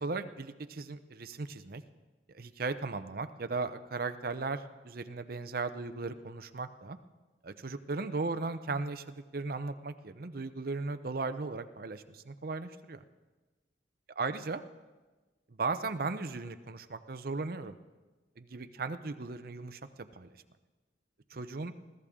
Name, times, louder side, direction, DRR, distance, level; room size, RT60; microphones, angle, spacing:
voice 1, 0.0-1.8 2.3-7.0 7.4-13.0 14.2-14.6 15.6-17.8 18.4-19.8 20.1-20.3 21.3-21.7, right 3 dB, 55° right, 10 dB, 0.7 m, -37 dB
21.5 x 13.5 x 3.7 m, 1.2 s
head